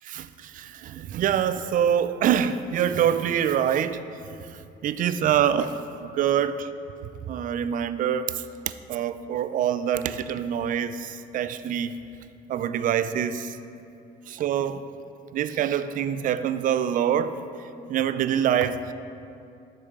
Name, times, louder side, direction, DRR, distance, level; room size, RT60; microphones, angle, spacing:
voice 1, 0.1-4.0 4.3-6.7 7.3-12.0 12.5-13.6 14.3-14.8 15.3-17.4 17.9-18.9, right 9 dB, 55° right, 12 dB, 0.4 m, -25 dB
6.6 x 6.2 x 5.1 m, 2.6 s
cardioid pair, 110°, 17 cm